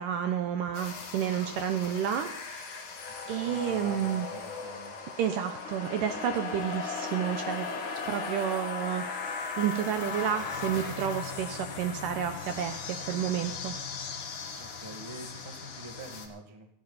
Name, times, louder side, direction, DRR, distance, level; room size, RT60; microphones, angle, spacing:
voice 1, 0.0-2.9 3.3-4.3 5.2-7.7 8.0-13.7, right 9 dB, 75° right, 7 dB, 2.1 m, -31 dB
sound 1, 0.7-16.3, left 5 dB, 55° left, 3.0 m, -38 dB
voice 2, 3.2-5.0 14.6-16.7, right 2 dB, 20° right, 2 dB, 0.8 m, -46 dB
19.0 x 15.0 x 4.1 m, 0.73 s
omnidirectional pair, 4.6 m